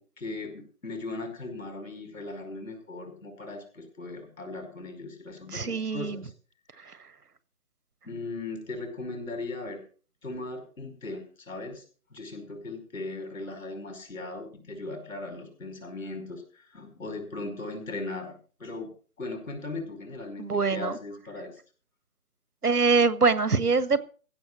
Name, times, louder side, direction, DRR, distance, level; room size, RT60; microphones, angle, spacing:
voice 1, 0.0-6.2 8.0-9.8 10.2-11.8 12.1-18.3 18.6-18.9 19.2-21.5, left 2 dB, 60° left, 4 dB, 5.5 m, -38 dB
voice 2, 5.5-6.2 20.4-21.0 22.6-24.0, right 4 dB, 85° right, 14 dB, 1.6 m, -24 dB
15.5 x 6.6 x 7.6 m, 0.40 s
figure-of-eight pair, 165°, 45 cm